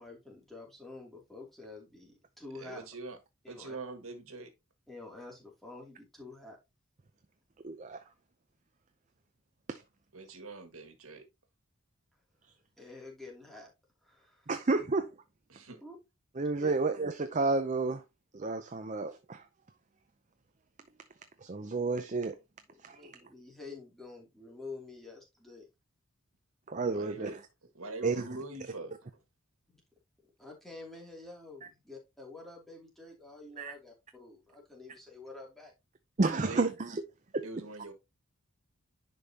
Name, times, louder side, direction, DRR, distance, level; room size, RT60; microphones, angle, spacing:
voice 1, 0.0-2.9 3.4-3.8 4.9-6.6 12.8-13.7 14.0-14.5 15.8-16.0 16.6-16.7 22.7-25.7 29.7-29.8 30.4-35.7, left 3 dB, ahead, 2.7 m, -48 dB
voice 2, 2.5-3.2 3.5-4.5 10.1-11.2 15.5-15.8 26.9-29.2 36.3-36.7 37.4-37.9, right 3 dB, 75° right, 1.8 m, -44 dB
voice 3, 7.6-8.0 9.7-9.8 14.5-15.1 16.4-18.0 18.3-19.4 21.4-22.4 22.8-23.1 26.7-27.3 28.0-28.2 33.6-33.7 36.2-37.0 37.3-37.4, right 3 dB, 35° right, 0.6 m, -31 dB
10.5 x 5.3 x 2.8 m
head